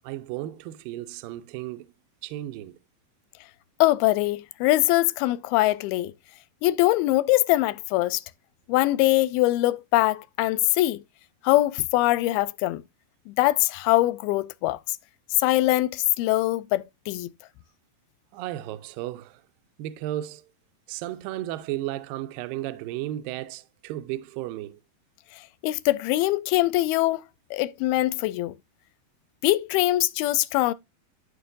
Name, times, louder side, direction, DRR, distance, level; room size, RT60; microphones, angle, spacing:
voice 1, 0.0-1.9 2.2-2.8 18.3-19.4 19.8-20.5 20.9-24.8, right 14 dB, 80° right, 2.2 m, -34 dB
voice 2, 3.8-6.1 6.6-8.2 8.7-11.0 11.4-12.8 13.3-15.0 15.4-17.3 25.6-27.2 27.5-28.6 29.4-30.7, left 17 dB, 85° left, 2.5 m, -22 dB
13.0 x 4.6 x 2.5 m
omnidirectional pair, 4.3 m